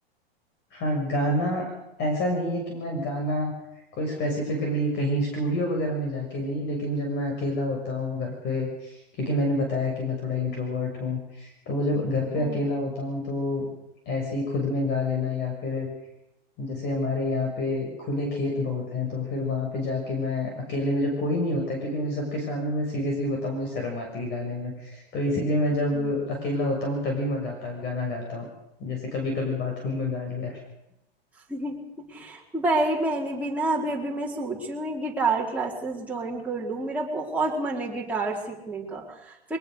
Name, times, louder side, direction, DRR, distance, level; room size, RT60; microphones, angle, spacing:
voice 1, 0.7-1.6 2.0-3.5 3.9-13.7 14.0-15.9 16.6-28.5 28.8-30.6, left 1 dB, 35° left, 1 dB, 6.7 m, -28 dB
voice 2, 31.5-31.8 32.1-39.6, right 2 dB, 5° right, -4 dB, 4.5 m, -29 dB
22.5 x 19.5 x 6.6 m, 0.86 s
hypercardioid pair, 130°, 31 cm